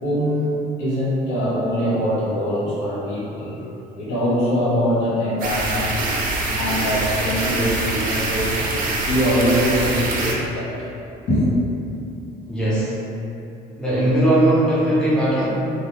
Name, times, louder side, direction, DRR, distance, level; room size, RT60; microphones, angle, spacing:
voice 1, 0.0-0.5 0.8-3.7 3.9-6.0 6.5-8.7 9.0-10.9 11.3-11.5, equal, 85° left, -9 dB, 0.9 m, -22 dB
sound 1, 5.4-10.3, right 2 dB, 55° right, 0.5 m, -24 dB
voice 2, 12.5-12.9 13.8-15.4, right 1 dB, 5° left, -9 dB, 0.7 m, -18 dB
2.2 x 2.1 x 3.0 m, 2.7 s
cardioid pair, 110°, 17 cm